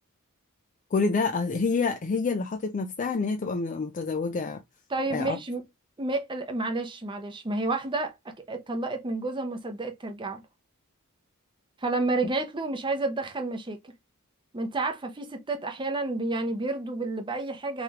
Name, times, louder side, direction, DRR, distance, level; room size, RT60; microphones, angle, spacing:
voice 1, 0.9-4.6 5.1-5.4, left 4 dB, 35° left, 0.4 m, -27 dB
voice 2, 4.9-5.6 6.0-10.4 11.8-13.9 14.5-17.8, right 2 dB, 20° right, 0.7 m, -30 dB
3.2 x 3.0 x 3.5 m
head